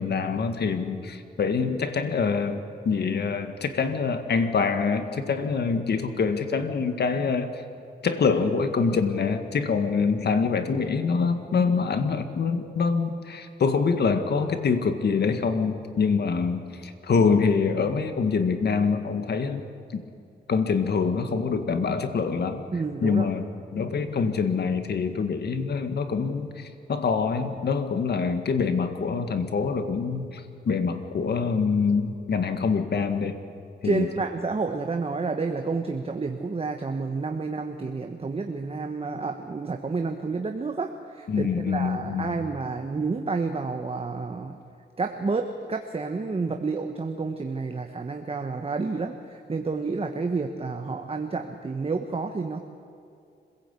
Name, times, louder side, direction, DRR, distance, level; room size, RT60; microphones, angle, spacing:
voice 1, 0.0-7.6 8.0-19.6 19.9-20.0 20.5-22.6 23.0-33.4 33.8-34.1 41.3-42.3, left 5 dB, 65° left, 8 dB, 1.9 m, -25 dB
voice 2, 22.7-23.3 33.8-44.6 45.0-52.6, right 4 dB, 30° right, 5 dB, 1.3 m, -30 dB
26.0 x 16.5 x 8.5 m, 2.5 s
cardioid pair, 90°, 18 cm